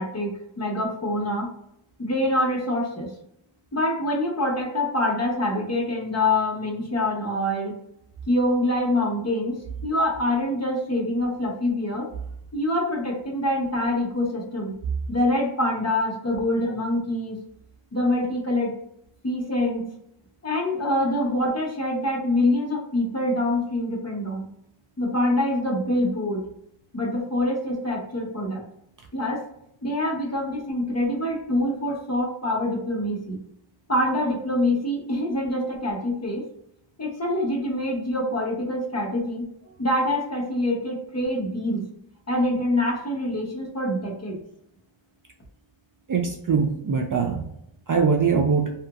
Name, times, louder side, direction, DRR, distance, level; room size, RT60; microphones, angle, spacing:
voice 1, 0.0-1.5 2.0-3.1 3.7-7.8 8.3-12.1 12.5-14.8 15.1-17.4 17.9-18.8 19.2-20.0 20.4-24.5 25.0-26.4 26.9-28.6 29.1-29.4 29.8-33.4 33.9-36.5 37.0-39.5 39.8-41.9 42.3-44.4, left 1 dB, 30° left, -1 dB, 0.8 m, -25 dB
voice 2, 46.1-47.5 47.9-48.7, right 5 dB, 45° right, 3 dB, 0.4 m, -22 dB
2.8 x 2.5 x 2.3 m, 0.76 s
wide cardioid pair, 75°, 49 cm